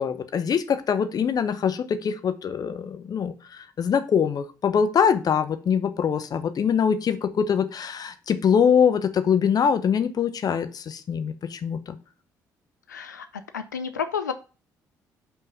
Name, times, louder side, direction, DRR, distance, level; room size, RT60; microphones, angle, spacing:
voice 1, 0.0-12.0, left 7 dB, 40° left, 11 dB, 0.7 m, -23 dB
voice 2, 12.9-14.3, left 6 dB, 85° left, 10 dB, 0.4 m, -31 dB
5.4 x 3.7 x 5.4 m, 0.35 s
figure-of-eight pair, 45°, 10 cm